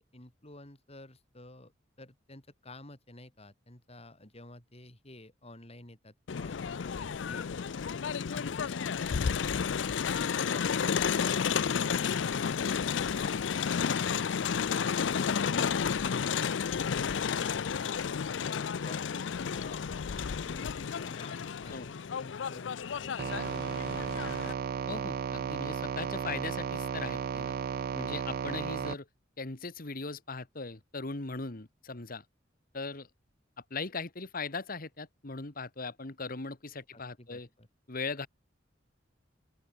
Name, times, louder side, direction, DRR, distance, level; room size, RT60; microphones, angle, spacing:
voice 1, 0.0-1.7 2.0-7.9 8.3-9.4 18.4-23.6 36.9-37.7, left 1 dB, 35° left, 5.4 m, -51 dB
Crowd, 6.3-24.5, left 6 dB, 80° left, 0.5 m, -32 dB
sound 1, 23.2-29.0, right 6 dB, 55° right, 0.3 m, -34 dB
voice 2, 24.9-27.5 27.9-29.1 29.4-32.2 32.7-33.1 33.7-37.5 37.9-38.3, left 3 dB, 50° left, 1.7 m, -39 dB
open air
head